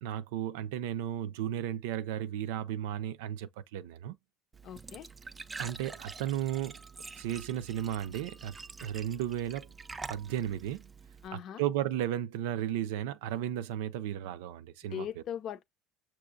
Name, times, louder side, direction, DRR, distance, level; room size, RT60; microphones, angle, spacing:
voice 1, 0.0-4.1 5.6-6.8 7.2-8.6 8.8-9.7 10.1-10.9 11.3-15.2, right 11 dB, 85° right, 0.4 m, -34 dB
Glass / Trickle dribble / Fill (with liquid), 4.5-11.3, right 4 dB, 20° right, 0.4 m, -46 dB
voice 2, 4.6-5.1 11.2-11.6 14.9-15.6, left 9 dB, 50° left, 0.7 m, -39 dB
6.2 x 2.9 x 2.6 m
supercardioid pair, 120°, 0 cm